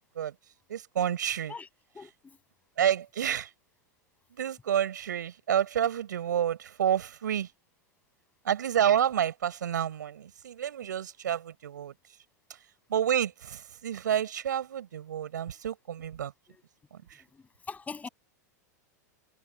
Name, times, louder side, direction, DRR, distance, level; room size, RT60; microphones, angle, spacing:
voice 1, 0.7-1.5 2.8-3.5 4.4-7.5 8.4-11.9 12.9-16.3 16.9-17.2, right 9 dB, 80° right, 6.7 m, -29 dB
voice 2, 1.9-2.4 16.5-16.6 17.3-18.1, left 4 dB, 15° left, 7.6 m, -42 dB
hypercardioid pair, 105°, 10 cm